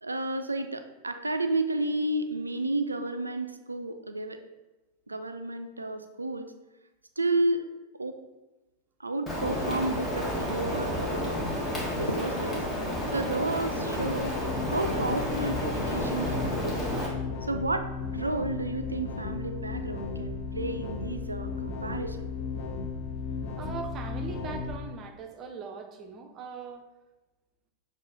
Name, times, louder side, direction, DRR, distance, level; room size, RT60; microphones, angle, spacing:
voice 1, 0.0-4.4 5.1-6.5 7.2-7.6 8.0-8.2 9.0-11.4 11.7-12.6 13.1-14.3 14.7-16.9 17.4-17.9 18.1-22.3, right 2 dB, 85° right, 8 dB, 0.3 m, -31 dB
Rain, 9.3-17.1, equal, 15° left, 1.2 m, -31 dB
sound 1, 14.0-24.8, left 4 dB, 50° left, 0.5 m, -35 dB
voice 2, 23.6-26.9, right 5 dB, 35° right, 5 dB, 0.5 m, -40 dB
6.1 x 2.6 x 2.6 m, 1.1 s
figure-of-eight pair, 90°, 0 cm